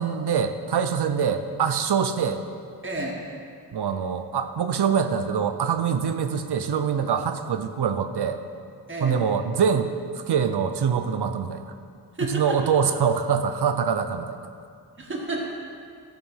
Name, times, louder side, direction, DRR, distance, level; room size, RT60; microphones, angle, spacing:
voice 1, 0.0-2.4 3.7-8.4 9.0-11.7 12.2-14.4, right 7 dB, 90° right, 8 dB, 0.7 m, -24 dB
voice 2, 2.8-3.2 8.9-9.2 12.2-12.6 15.0-15.5, right 2 dB, 30° right, -3 dB, 1.7 m, -30 dB
13.0 x 5.1 x 5.6 m, 2.3 s
cardioid pair, 55°, 38 cm